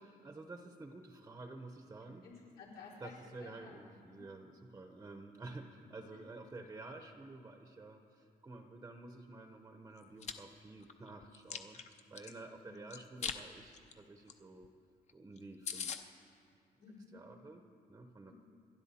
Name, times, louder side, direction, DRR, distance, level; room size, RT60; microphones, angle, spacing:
voice 1, 0.0-2.3 3.0-14.7 15.1-16.1 17.1-17.6 17.9-18.3, right 2 dB, 15° right, 5 dB, 0.7 m, -51 dB
voice 2, 2.0-3.8 4.1-4.2 5.7-5.8 6.1-6.2 12.6-12.8 16.8-17.2 18.3-18.4, left 4 dB, 75° left, -6 dB, 5.0 m, -54 dB
Chewing mastication, 10.0-10.3 10.8-12.3 12.9-13.4 13.7-13.9 14.3-14.4 14.6-14.7 15.1-15.2 15.4-15.5 15.7-16.0, left 6 dB, 40° left, 0.7 m, -41 dB
28.5 x 12.0 x 4.2 m, 2.5 s
cardioid pair, 175°, 17 cm